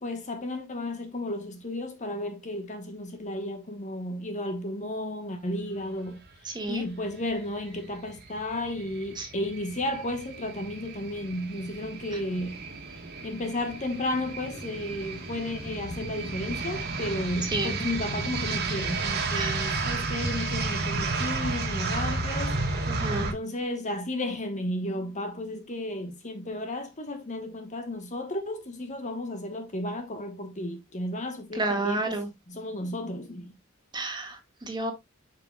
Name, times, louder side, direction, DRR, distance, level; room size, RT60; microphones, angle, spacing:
voice 1, 0.0-6.2 6.7-12.6 13.2-22.6 23.2-33.5, left 1 dB, 35° left, 1.2 m, -33 dB
voice 2, 6.5-6.8 9.2-9.3 17.5-17.8 19.3-19.7 22.9-23.3 31.6-32.3 33.9-34.9, right 2 dB, 20° right, 1.8 m, -30 dB
sound 1, 7.6-23.3, right 3 dB, 50° right, 1.8 m, -32 dB
8.3 x 5.8 x 2.3 m
head